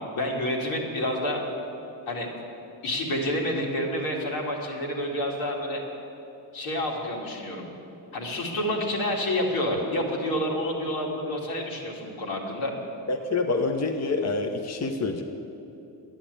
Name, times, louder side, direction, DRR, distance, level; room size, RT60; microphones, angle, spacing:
voice 1, 0.1-1.4 2.1-2.3 2.8-5.8 6.5-7.7 8.1-12.7, left 1 dB, 80° left, -2 dB, 2.7 m, -28 dB
voice 2, 13.1-15.2, left 3 dB, 35° left, 3 dB, 1.1 m, -27 dB
11.0 x 9.0 x 8.4 m, 2.9 s
supercardioid pair, 75°, 48 cm